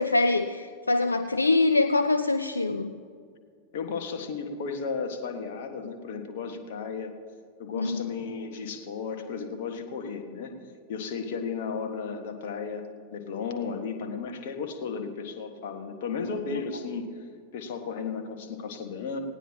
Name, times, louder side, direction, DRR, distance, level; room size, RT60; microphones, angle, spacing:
voice 1, 0.0-2.9 7.8-8.0 16.5-16.6, left 2 dB, 80° left, 9 dB, 0.4 m, -24 dB
voice 2, 3.7-7.1 7.6-10.6 10.9-12.8 13.1-17.2 17.5-19.2, left 5 dB, 55° left, 5 dB, 1.6 m, -34 dB
19.0 x 17.5 x 3.0 m, 2.2 s
figure-of-eight pair, 90°, 0 cm